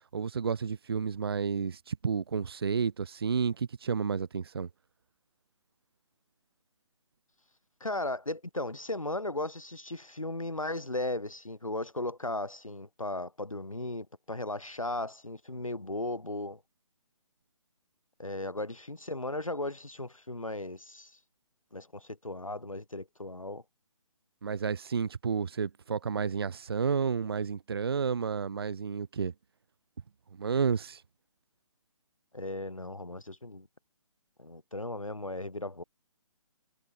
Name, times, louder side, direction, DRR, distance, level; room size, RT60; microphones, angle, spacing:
voice 1, 0.1-4.7 24.4-29.3 30.4-31.0, right 6 dB, 45° right, 1.1 m, -31 dB
voice 2, 7.8-16.6 18.2-21.2 21.7-23.6 32.3-33.7 34.4-35.8, left 2 dB, 80° left, 2.7 m, -36 dB
figure-of-eight pair, 145°, 17 cm